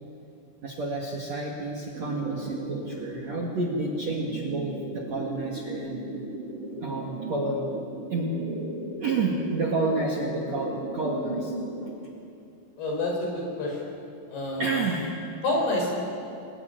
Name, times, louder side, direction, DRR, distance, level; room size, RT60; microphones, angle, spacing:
voice 1, 0.6-6.0 6.8-7.7 8.1-8.4 9.0-11.5 11.8-11.9 14.6-15.2, right 2 dB, 45° right, 0 dB, 2.5 m, -30 dB
sound 1, 1.9-11.9, right 1 dB, 30° right, 4.6 m, -36 dB
voice 2, 12.8-13.8 14.3-14.7 15.4-16.0, left 2 dB, 55° left, 0 dB, 7.2 m, -28 dB
27.0 x 19.5 x 9.4 m, 2.6 s
omnidirectional pair, 5.6 m